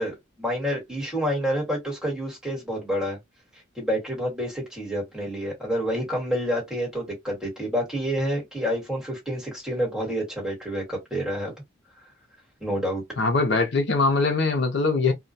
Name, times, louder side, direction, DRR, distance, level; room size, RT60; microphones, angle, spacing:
voice 1, 0.0-3.2 3.7-11.5 12.6-13.0, equal, 5° right, 1.3 m, -28 dB
voice 2, 13.2-15.1, left 3 dB, 60° left, 0.5 m, -22 dB
2.2 x 2.1 x 2.6 m
head